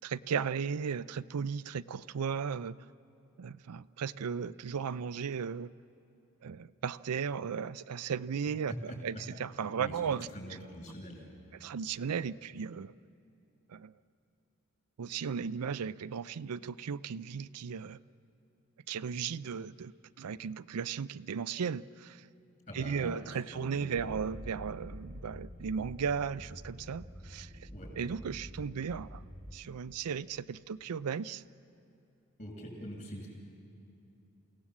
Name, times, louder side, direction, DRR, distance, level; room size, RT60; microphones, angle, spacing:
voice 1, 0.0-2.8 3.4-5.7 6.4-10.3 11.5-12.9 13.7-13.9 15.0-18.0 18.9-22.3 22.7-27.7 28.0-29.2 29.5-31.4, right 6 dB, 85° right, 15 dB, 0.5 m, -36 dB
voice 2, 9.8-11.3 22.7-24.1 27.7-27.9 32.4-33.3, equal, 35° left, 0 dB, 6.6 m, -44 dB
sound 1, 24.0-29.6, equal, 5° right, 1.6 m, -47 dB
28.5 x 17.0 x 7.4 m, 2.8 s
head